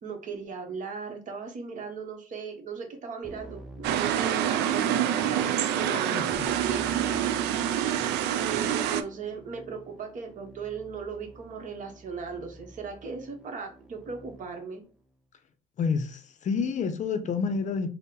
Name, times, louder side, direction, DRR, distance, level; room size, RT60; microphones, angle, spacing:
voice 1, 0.0-5.5 5.8-6.8 8.1-14.8, right 5 dB, 50° right, 1.0 m, -38 dB
Keyboard (musical), 3.2-4.9 6.3-14.7, right 1 dB, 5° right, 0.7 m, -49 dB
sound 1, 3.8-9.0, right 10 dB, 85° right, 0.4 m, -26 dB
voice 2, 5.9-6.5 15.8-17.9, left 5 dB, 45° left, 0.6 m, -29 dB
4.1 x 2.1 x 3.7 m
cardioid pair, 110°, 17 cm